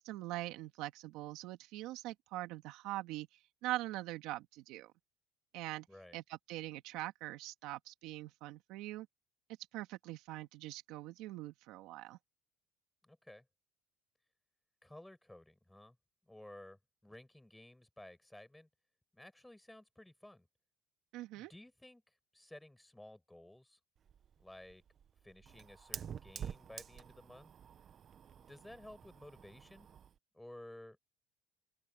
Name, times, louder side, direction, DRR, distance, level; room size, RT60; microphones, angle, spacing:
voice 1, 0.0-4.9 5.5-5.9 6.1-9.1 9.7-12.2 21.1-21.5, right 16 dB, 70° right, 2.2 m, -43 dB
voice 2, 5.9-6.2 13.0-13.5 14.8-16.0 16.2-18.7 19.1-20.5 21.3-23.8 24.4-24.8 25.2-27.5 28.3-29.9 30.3-31.0, left 1 dB, 5° left, 5.6 m, -55 dB
Fire, 24.0-30.2, right 8 dB, 35° right, 1.1 m, -49 dB
open air
cardioid pair, 130°, 0 cm